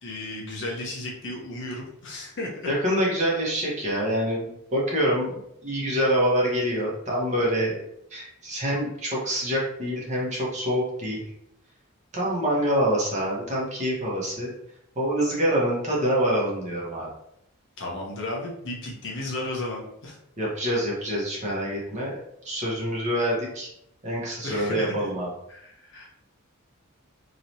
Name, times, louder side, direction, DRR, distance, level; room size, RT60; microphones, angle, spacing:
voice 1, 0.0-2.5 17.8-20.2 24.4-25.1 25.5-26.1, left 1 dB, 55° left, -2 dB, 0.9 m, -34 dB
voice 2, 2.7-7.8 8.1-11.2 12.1-14.5 15.0-17.1 20.4-22.2 22.4-23.7 24.0-25.3, equal, 30° right, -4 dB, 1.0 m, -26 dB
3.1 x 2.9 x 2.7 m, 0.76 s
head